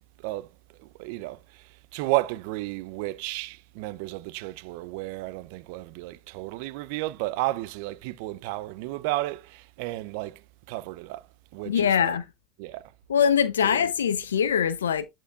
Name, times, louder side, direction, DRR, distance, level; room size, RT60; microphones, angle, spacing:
voice 1, 0.8-1.6 1.9-10.4 10.7-11.2 11.5-12.1 12.6-12.9, right 18 dB, 70° right, 0.5 m, -32 dB
voice 2, 11.6-12.3 13.1-15.1, left 8 dB, 90° left, 0.6 m, -23 dB
11.5 x 4.5 x 2.4 m
hypercardioid pair, 80°, 0 cm